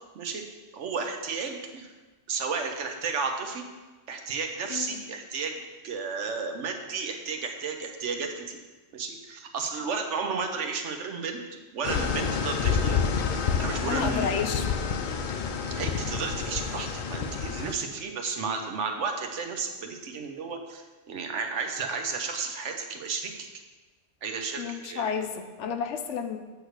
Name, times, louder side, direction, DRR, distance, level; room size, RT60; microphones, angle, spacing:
voice 1, 0.7-1.9 2.3-3.7 4.1-8.6 8.9-11.4 11.7-13.2 13.6-14.4 15.8-23.5 24.2-25.1, right 5 dB, 75° right, 4 dB, 1.1 m, -33 dB
sound 1, 11.8-17.7, left 6 dB, 55° left, 0.5 m, -28 dB
voice 2, 13.9-14.7 15.1-15.2 24.6-26.4, left 6 dB, 75° left, 6 dB, 0.9 m, -31 dB
8.2 x 3.2 x 6.3 m, 1.3 s
omnidirectional pair, 1.2 m